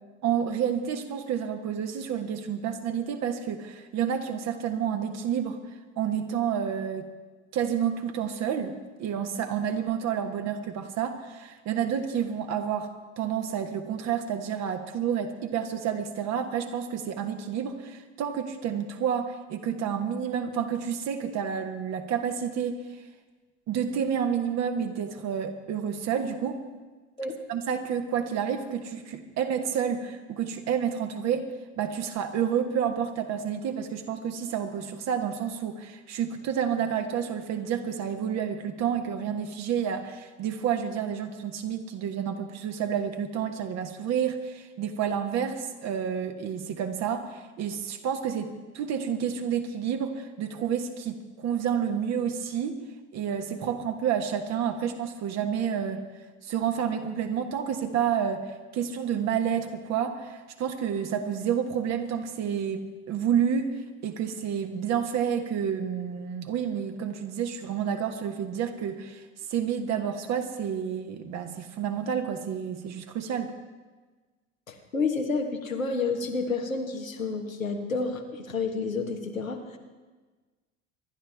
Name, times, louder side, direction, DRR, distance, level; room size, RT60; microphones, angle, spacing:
voice 1, 0.2-5.6 6.0-7.0 7.5-8.7 9.0-12.9 13.2-22.8 23.7-26.6 27.5-31.5 31.8-52.8 53.1-56.0 56.4-63.7 64.0-69.2 69.5-73.5, right 8 dB, 40° right, 6 dB, 1.5 m, -29 dB
voice 2, 74.7-79.8, left 4 dB, 85° left, 2 dB, 1.6 m, -30 dB
25.5 x 11.5 x 3.6 m, 1.3 s
figure-of-eight pair, 70°, 39 cm